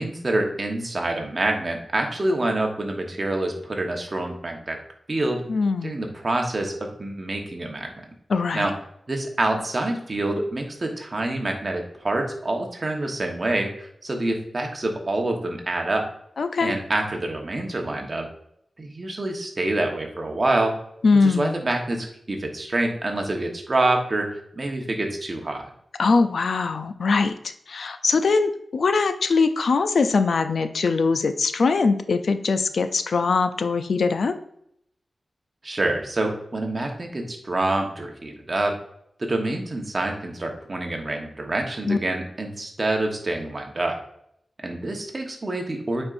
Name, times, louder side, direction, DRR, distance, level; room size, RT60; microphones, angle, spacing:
voice 1, 0.0-4.8 5.1-5.4 5.8-7.9 8.5-8.7 9.1-16.1 16.6-18.3 18.8-20.7 21.2-24.3 24.6-25.7 35.6-38.8 39.2-44.0 44.6-46.1, right 2 dB, 35° right, 2 dB, 1.1 m, -26 dB
voice 2, 5.5-6.0 8.3-8.7 16.4-16.8 21.0-21.6 26.0-34.3 41.9-42.0, left 4 dB, 75° left, 9 dB, 0.4 m, -22 dB
8.7 x 4.4 x 2.6 m, 0.72 s
wide cardioid pair, 110°, 0 cm